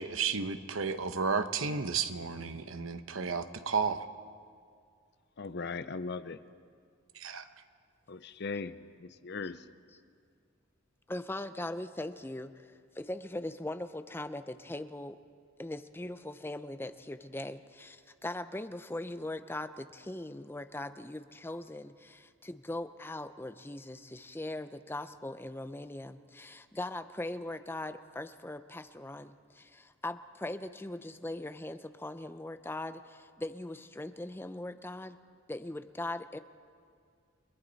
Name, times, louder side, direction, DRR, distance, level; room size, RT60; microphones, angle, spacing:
voice 1, 0.0-4.1 7.1-7.5, right 5 dB, 80° right, 9 dB, 1.0 m, -32 dB
voice 2, 5.4-6.4 8.1-9.6, left 4 dB, 55° left, 13 dB, 0.6 m, -39 dB
voice 3, 11.1-15.2 15.6-35.2 35.5-36.4, left 1 dB, 10° left, 10 dB, 0.6 m, -40 dB
30.0 x 21.0 x 4.1 m, 2.2 s
head